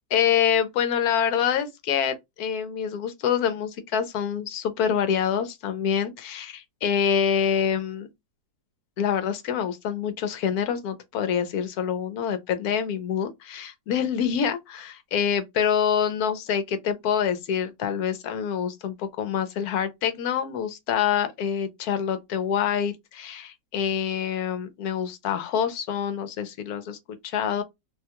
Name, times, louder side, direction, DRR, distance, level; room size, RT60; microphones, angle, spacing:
voice 1, 0.1-8.1 9.0-27.0 27.2-27.6, left 8 dB, 70° left, 1.0 m, -26 dB
3.5 x 2.2 x 2.8 m
omnidirectional pair, 1.9 m